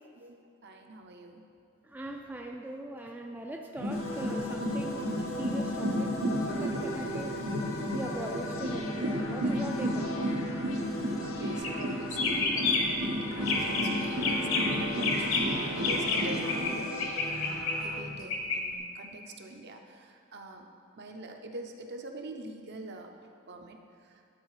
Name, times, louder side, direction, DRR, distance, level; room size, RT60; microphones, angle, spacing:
voice 1, 0.1-1.4 11.2-20.7 21.0-23.1 23.5-24.1, right 2 dB, 55° right, 4 dB, 0.7 m, -44 dB
voice 2, 1.8-6.1 6.5-7.4 7.9-10.3, right 1 dB, 10° right, 1 dB, 0.3 m, -40 dB
sound 1, 3.8-16.7, equal, 85° right, 1.4 m, -33 dB
sound 2, 3.9-18.0, left 1 dB, 90° left, 0.8 m, -40 dB
sound 3, 11.5-11.8 12.1-13.0 13.4-13.9 14.2-16.7 17.0-18.6, left 4 dB, 65° left, 1.0 m, -29 dB
11.5 x 4.6 x 4.9 m, 2.4 s
head